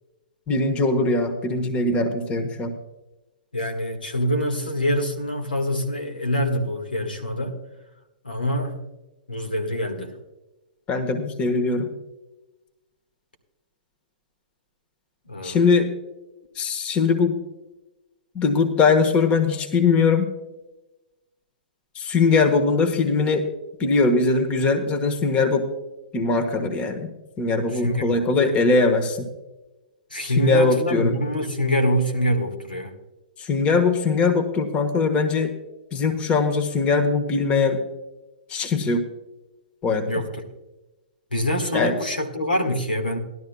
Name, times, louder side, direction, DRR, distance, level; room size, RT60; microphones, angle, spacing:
voice 1, 0.5-2.7 10.9-11.9 15.4-15.9 16.5-17.4 18.3-20.3 21.9-23.5 23.8-25.7 26.1-27.1 27.4-29.3 30.2-31.2 33.4-35.5 35.9-37.8 38.5-39.0 39.8-40.2 41.7-41.9, left 4 dB, 25° left, 8 dB, 1.2 m, -21 dB
voice 2, 3.5-7.6 8.2-8.7 9.3-10.2 15.3-15.6 27.7-28.5 30.1-32.9 40.1-40.3 41.3-43.2, equal, 85° left, 2 dB, 1.7 m, -25 dB
17.5 x 12.0 x 2.3 m, 1.0 s
figure-of-eight pair, 110°, 5 cm